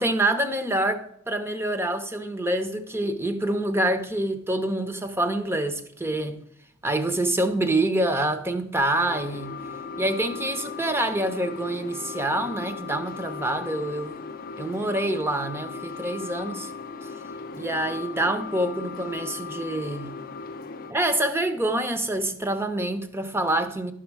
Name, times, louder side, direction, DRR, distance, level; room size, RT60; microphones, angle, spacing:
voice 1, 0.0-6.4 6.8-9.6 10.0-14.2 14.6-16.7 17.0-17.1 17.5-20.1 20.9-23.9, right 1 dB, 10° right, 0.7 m, -26 dB
sound 1, 9.0-20.9, left 5 dB, 45° left, 0.5 m, -37 dB
11.5 x 6.3 x 4.7 m
head